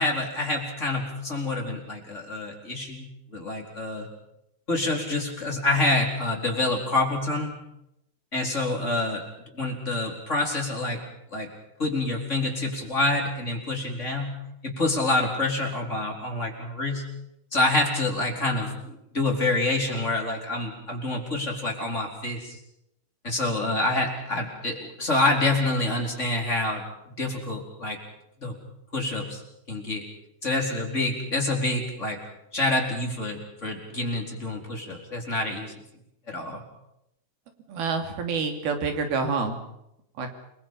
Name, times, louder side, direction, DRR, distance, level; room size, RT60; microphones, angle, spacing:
voice 1, 0.0-4.1 4.7-7.6 8.3-11.0 11.3-11.5 11.8-14.4 14.6-17.0 17.5-22.6 23.2-26.8 27.2-28.0 28.4-28.5 28.9-29.4 29.7-30.0 30.4-32.2 32.5-35.7 36.3-36.6, left 2 dB, 20° left, 1 dB, 4.4 m, -27 dB
voice 2, 37.7-39.6 40.2-40.3, right 4 dB, 75° right, 5 dB, 4.7 m, -27 dB
29.5 x 22.5 x 5.6 m, 0.80 s
omnidirectional pair, 4.4 m